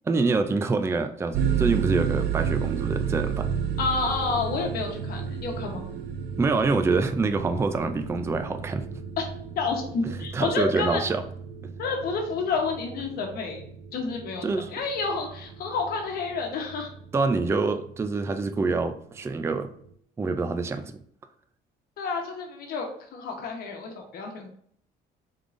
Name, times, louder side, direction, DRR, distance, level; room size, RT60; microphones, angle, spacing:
voice 1, 0.1-3.5 6.4-8.9 10.0-11.2 14.4-14.7 17.1-19.7 20.2-20.9, right 3 dB, 15° right, 9 dB, 0.3 m, -26 dB
sound 1, 1.3-19.9, right 7 dB, 75° right, 0.5 m, -33 dB
voice 2, 3.8-5.9 9.2-9.3 9.6-11.0 11.8-13.6 13.9-16.9 22.0-22.9 23.1-24.5, left 4 dB, 65° left, 2 dB, 1.1 m, -29 dB
4.7 x 3.7 x 2.5 m, 0.62 s
cardioid pair, 110°, 17 cm